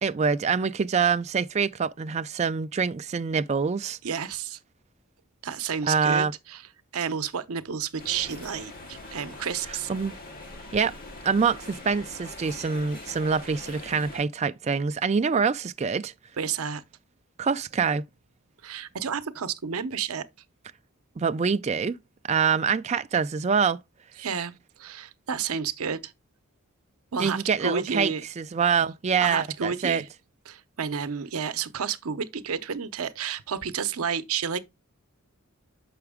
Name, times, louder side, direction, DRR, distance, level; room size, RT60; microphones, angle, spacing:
voice 1, 0.0-4.0 5.9-6.3 9.9-10.1 10.7-11.0 11.2-16.1 17.4-18.0 21.2-22.0 22.3-23.8 27.2-30.0, right 5 dB, 30° right, 0.3 m, -25 dB
voice 2, 4.0-4.6 5.4-6.6 6.9-9.9 16.4-16.8 18.6-20.3 24.2-24.5 24.8-26.1 27.1-28.2 29.2-30.1 30.5-34.6, right 6 dB, 75° right, 0.7 m, -31 dB
sound 1, 8.0-14.2, left 2 dB, 40° left, 2.0 m, -42 dB
6.9 x 5.8 x 3.5 m
head